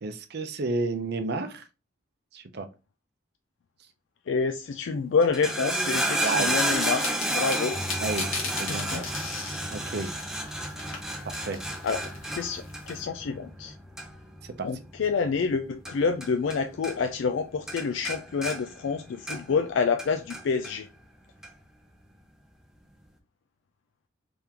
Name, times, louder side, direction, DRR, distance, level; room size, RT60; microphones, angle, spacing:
voice 1, 0.0-1.6 2.3-2.7 6.2-6.6 8.0-9.1 9.7-10.1 11.2-11.6 14.4-14.7, right 3 dB, 55° right, 0.6 m, -32 dB
voice 2, 4.3-7.8 8.7-9.1 11.8-13.7 14.6-20.9, left 5 dB, 65° left, 0.4 m, -28 dB
sound 1, 5.2-16.6 16.8-17.4 17.7-19.6 20.0-20.7 21.4-21.5, right 1 dB, 5° right, 0.5 m, -31 dB
sound 2, 6.1-13.0, left 4 dB, 85° left, 1.4 m, -39 dB
3.7 x 3.4 x 2.9 m
head